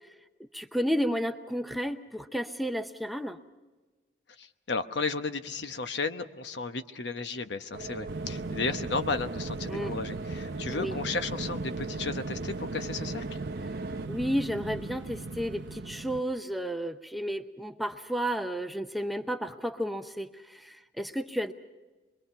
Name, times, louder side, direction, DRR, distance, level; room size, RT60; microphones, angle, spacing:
voice 1, 0.4-3.4 9.7-10.0 10.7-10.9 14.1-21.5, equal, ahead, 7 dB, 0.6 m, -32 dB
voice 2, 4.4-13.4, left 3 dB, 75° left, 9 dB, 1.0 m, -34 dB
sound 1, 7.7-14.1, right 2 dB, 55° right, 1.0 m, -40 dB
sound 2, 8.1-16.2, right 3 dB, 75° right, 0.7 m, -38 dB
25.5 x 22.0 x 5.7 m, 1.2 s
head